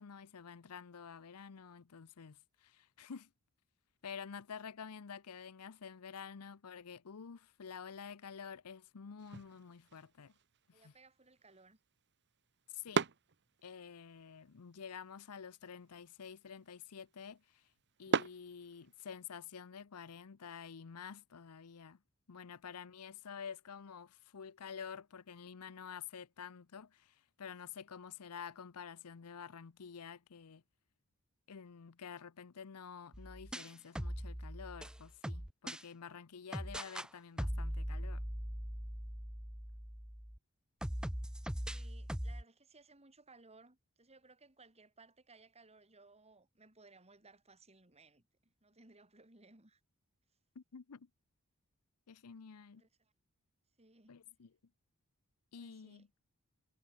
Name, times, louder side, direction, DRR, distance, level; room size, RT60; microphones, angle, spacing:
voice 1, 0.0-3.3 4.0-10.3 10.8-10.9 12.7-13.0 13.6-17.4 18.0-22.0 22.3-30.6 31.5-38.2 50.6-51.1 52.1-52.8 54.1-54.5 55.5-56.1, left 6 dB, 85° left, 0.7 m, -49 dB
sound 1, 9.2-19.2, right 4 dB, 50° right, 1.2 m, -43 dB
voice 2, 10.7-11.8 41.7-49.8 52.8-53.1 53.8-54.2 55.6-56.1, right 3 dB, 30° right, 5.4 m, -62 dB
sound 2, 33.1-35.8 36.5-37.1 37.4-40.4 40.8-42.4, equal, 5° right, 0.7 m, -41 dB
head